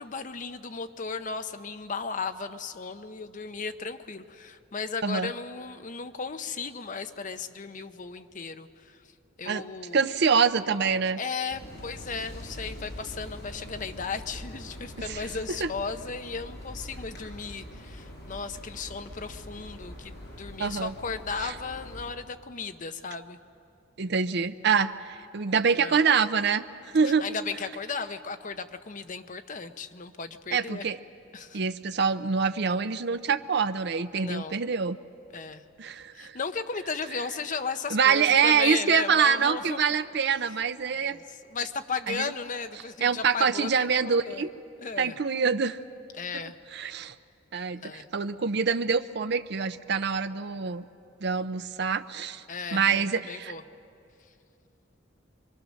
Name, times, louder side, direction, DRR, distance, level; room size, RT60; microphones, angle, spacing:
voice 1, 0.0-9.0 9.4-10.1 11.2-23.4 25.7-26.0 27.2-30.9 31.3-31.6 34.1-34.6 35.3-35.6 36.1-39.8 41.0-44.4 44.8-45.1 46.1-46.6 47.7-48.1 52.5-53.6, left 5 dB, 40° left, 9 dB, 0.8 m, -35 dB
voice 2, 9.9-11.2 15.0-15.2 15.6-15.7 20.6-20.9 21.4-21.5 24.0-26.6 26.9-27.2 30.5-31.0 31.5-35.0 35.8-36.4 37.9-41.2 42.1-42.3 43.0-44.5 45.0-45.8 46.7-47.2 47.5-50.8 51.2-52.4 52.7-53.5, right 6 dB, 60° right, 11 dB, 0.6 m, -25 dB
sound 1, 11.5-22.1, left 1 dB, 60° left, 5.7 m, -43 dB
24.0 x 24.0 x 6.4 m, 2.5 s
head